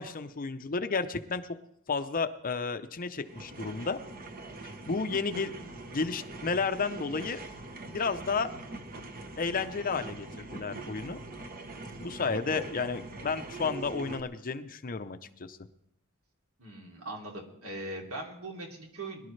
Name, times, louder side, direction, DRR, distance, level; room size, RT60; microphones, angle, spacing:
voice 1, 0.0-1.5 1.9-4.0 4.9-7.4 7.9-8.5 9.4-11.2 12.0-15.6, left 4 dB, 40° left, 10 dB, 0.7 m, -32 dB
sound 1, 3.2-14.2, right 2 dB, 40° right, 1.1 m, -43 dB
voice 2, 16.6-19.3, right 2 dB, 70° right, 0 dB, 3.0 m, -40 dB
22.5 x 12.0 x 3.3 m, 0.78 s
head